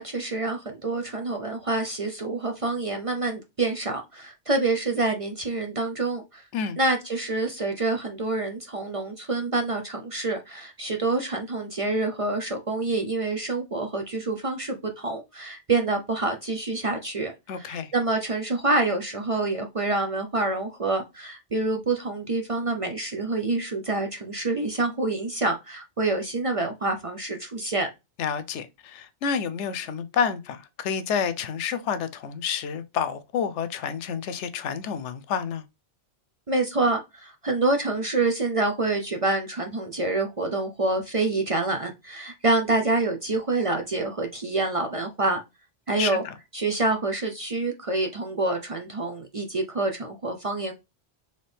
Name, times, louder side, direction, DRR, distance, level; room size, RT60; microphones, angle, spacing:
voice 1, 0.0-6.4 6.8-27.9 36.5-45.4 45.9-46.2 46.5-50.7, right 2 dB, 40° right, 0.5 m, -27 dB
voice 2, 17.5-17.9 28.2-35.6 46.0-46.3, left 7 dB, 90° left, 0.9 m, -29 dB
4.3 x 3.2 x 3.4 m
omnidirectional pair, 1.2 m